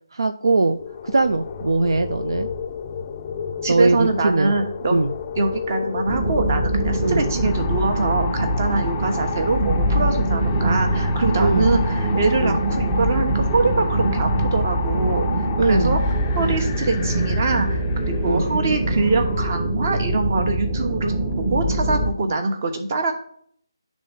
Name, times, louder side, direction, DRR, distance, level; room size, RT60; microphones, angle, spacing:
voice 1, 0.1-2.5 3.7-4.6 4.9-5.1 7.0-7.2 11.4-11.7 12.4-12.6 15.6-16.0 18.2-18.5, right 3 dB, 70° right, 8 dB, 0.4 m, -21 dB
sound 1, 0.6-19.5, left 6 dB, 20° left, 0.4 m, -32 dB
voice 2, 3.6-5.0 5.4-16.0 16.3-23.1, right 3 dB, 35° right, 5 dB, 1.0 m, -24 dB
sound 2, 6.1-22.1, right 1 dB, 15° right, 0.8 m, -23 dB
10.5 x 3.6 x 3.9 m, 0.62 s
figure-of-eight pair, 155°, 2 cm